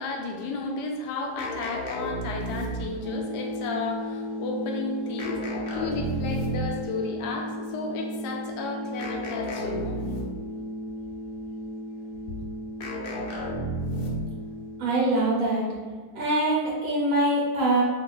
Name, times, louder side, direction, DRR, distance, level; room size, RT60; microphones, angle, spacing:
voice 1, 0.0-10.1 12.3-12.4, left 3 dB, 90° left, 2 dB, 1.2 m, -33 dB
sound 1, 1.4-3.1 5.2-6.8 9.0-10.5 12.8-14.4, right 1 dB, 70° left, 0.5 m, -32 dB
sound 2, 3.0-15.0, equal, 75° right, 1.3 m, -35 dB
voice 2, 14.8-15.7 16.1-17.8, right 2 dB, 60° right, -4 dB, 1.3 m, -23 dB
3.0 x 2.7 x 3.8 m, 1.4 s
omnidirectional pair, 1.7 m